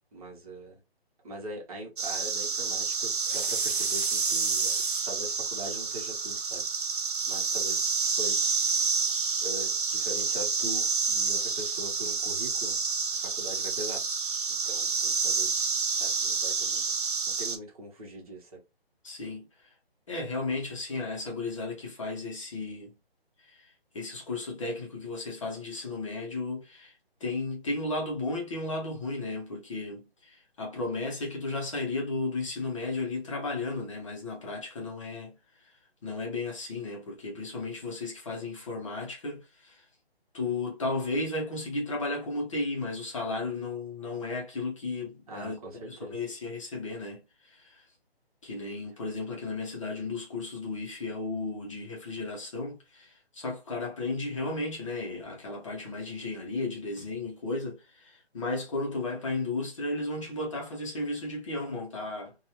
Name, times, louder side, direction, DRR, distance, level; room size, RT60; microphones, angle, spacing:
voice 1, 0.1-0.8 1.2-6.6 7.3-9.0 9.4-12.8 13.2-14.0 14.6-15.6 16.0-16.8 17.3-18.6 45.3-46.2, right 1 dB, 35° right, 1.1 m, -42 dB
sound 1, 2.0-17.6, right 5 dB, 55° right, 0.6 m, -29 dB
voice 2, 19.0-19.7 20.1-22.9 23.4-26.9 27.2-39.9 40.3-45.6 45.9-47.8 48.4-62.3, left 2 dB, 30° left, 0.7 m, -34 dB
2.6 x 2.3 x 3.1 m
figure-of-eight pair, 150°, 31 cm